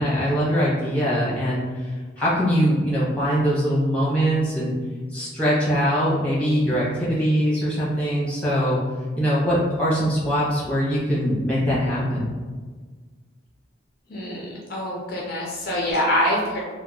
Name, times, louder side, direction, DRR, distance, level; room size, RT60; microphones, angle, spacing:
voice 1, 0.0-1.9 2.2-4.7 5.1-8.8 9.2-12.3, equal, 5° left, -9 dB, 1.0 m, -22 dB
voice 2, 14.1-16.6, equal, 50° left, -3 dB, 0.4 m, -25 dB
2.8 x 2.1 x 3.5 m, 1.4 s
head